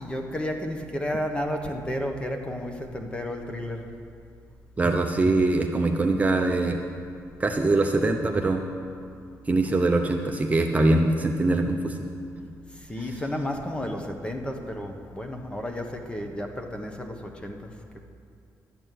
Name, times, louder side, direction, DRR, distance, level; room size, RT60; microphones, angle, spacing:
voice 1, 0.0-3.9 12.7-17.7, left 1 dB, 15° left, 4 dB, 1.2 m, -32 dB
voice 2, 4.8-6.8 7.4-8.6 9.5-12.0 12.4-12.5, right 2 dB, 20° right, 3 dB, 0.7 m, -23 dB
12.0 x 6.5 x 9.2 m, 2.4 s
cardioid pair, 110°, 7 cm